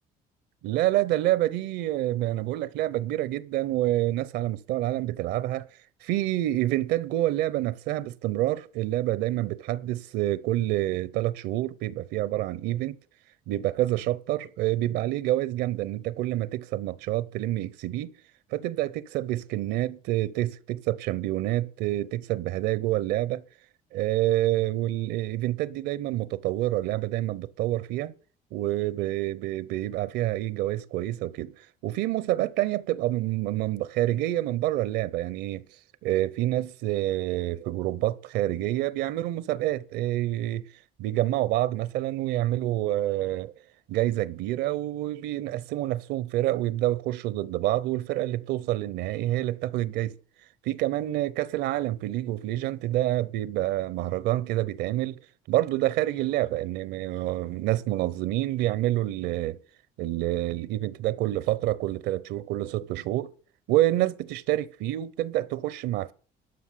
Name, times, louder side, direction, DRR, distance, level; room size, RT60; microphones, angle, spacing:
voice 1, 0.6-5.7 6.0-13.0 13.5-18.1 18.5-23.4 23.9-28.1 28.5-31.5 31.8-35.6 36.0-40.7 41.0-43.5 43.9-50.1 50.7-55.2 55.5-59.6 60.0-63.3 63.7-66.1, right 15 dB, 85° right, 0.8 m, -27 dB
13.0 x 5.6 x 8.5 m
cardioid pair, 110°, 17 cm